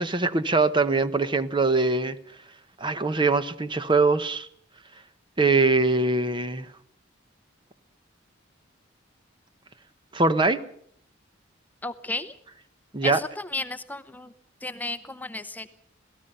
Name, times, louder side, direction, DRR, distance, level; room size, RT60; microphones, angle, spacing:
voice 1, 0.0-2.2 2.8-4.5 5.4-6.7 10.1-10.6 12.9-13.2, right 3 dB, 25° right, 11 dB, 0.9 m, -22 dB
voice 2, 11.8-12.3 13.0-14.3 14.6-15.7, left 2 dB, 10° left, 11 dB, 0.8 m, -33 dB
27.0 x 18.0 x 5.5 m, 0.63 s
head